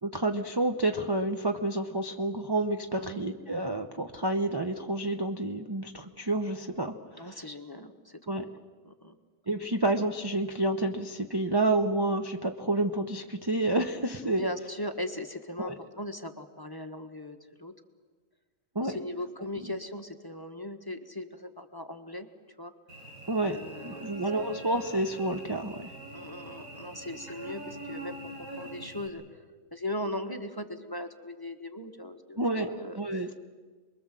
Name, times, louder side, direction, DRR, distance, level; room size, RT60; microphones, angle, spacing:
voice 1, 0.0-7.5 8.3-8.5 9.5-14.4 15.6-15.7 18.7-19.0 19.6-19.7 23.3-23.6 23.8-25.9 32.4-32.7 33.0-33.3, right 2 dB, 20° right, 3 dB, 0.6 m, -29 dB
voice 2, 7.2-8.6 8.8-9.2 14.2-17.7 18.8-22.3 22.6-22.7 23.4-24.1 26.1-28.2 28.5-29.4 29.7-33.0, left 1 dB, 15° left, 5 dB, 1.2 m, -38 dB
Cricket / Buzz, 22.9-29.1, right 1 dB, 85° right, 5.9 m, -43 dB
28.5 x 22.0 x 7.6 m, 1.4 s
omnidirectional pair, 1.6 m